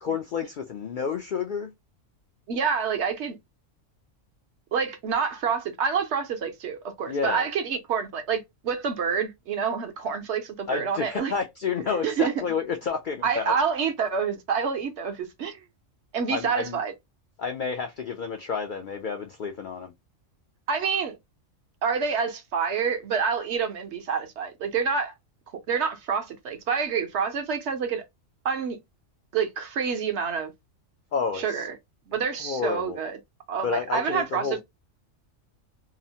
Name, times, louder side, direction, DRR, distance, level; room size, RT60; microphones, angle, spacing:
voice 1, 0.0-1.7 7.1-7.5 10.7-13.5 16.3-16.8 17.4-19.9 31.1-31.7 32.4-33.0 33.6-34.6, left 5 dB, 70° left, 0.4 m, -30 dB
voice 2, 2.5-3.4 4.7-11.3 11.9-12.3 13.2-15.6 16.1-16.9 20.7-21.2 21.8-25.1 25.7-28.0 28.4-28.8 29.3-30.5 31.3-31.8 32.1-33.2 33.5-34.6, right 6 dB, 65° right, 0.9 m, -27 dB
2.9 x 2.0 x 2.6 m
omnidirectional pair, 1.3 m